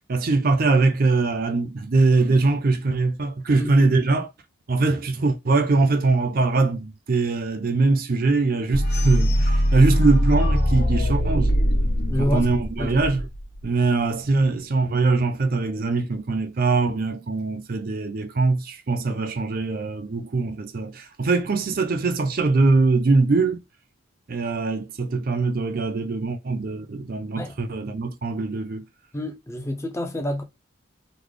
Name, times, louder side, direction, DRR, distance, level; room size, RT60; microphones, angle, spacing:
voice 1, 0.1-4.3 4.7-11.6 12.2-13.3 13.6-23.6 24.3-28.8, right 3 dB, 45° right, 0.5 m, -22 dB
voice 2, 3.6-3.9 12.1-12.5 12.8-13.0 27.4-27.5 29.1-30.4, left 1 dB, 15° left, 0.5 m, -28 dB
sound 1, 8.7-13.6, equal, 50° left, 1.4 m, -21 dB
3.8 x 2.1 x 3.2 m
head